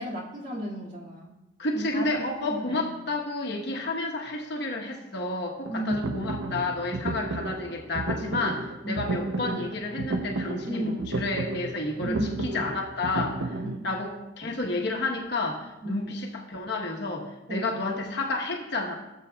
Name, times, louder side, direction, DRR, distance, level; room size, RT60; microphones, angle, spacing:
voice 1, 0.0-1.4 1.7-2.8 5.7-6.1 8.8-9.1 10.7-11.2 12.0-12.5 13.6-13.9 15.8-16.1 17.5-17.7, equal, 40° right, -5 dB, 2.0 m, -34 dB
voice 2, 1.6-12.2 12.4-13.5 13.8-18.9, left 2 dB, 55° left, 1 dB, 1.1 m, -31 dB
sound 1, 5.7-13.8, right 2 dB, 65° right, 0.6 m, -33 dB
15.5 x 7.5 x 2.3 m, 0.97 s
head